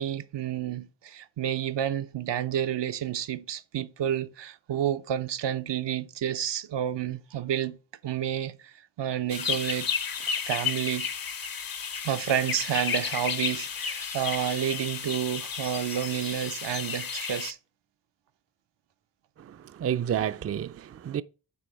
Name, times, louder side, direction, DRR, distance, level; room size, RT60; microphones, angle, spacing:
voice 1, 0.0-7.8 8.0-9.9 10.2-11.1 12.0-17.6, right 10 dB, 80° right, 0.7 m, -30 dB
sound 1, 9.3-17.5, left 7 dB, 55° left, 0.8 m, -32 dB
voice 2, 19.4-21.2, right 9 dB, 35° right, 0.4 m, -30 dB
9.4 x 3.6 x 4.6 m
cardioid pair, 75°, 42 cm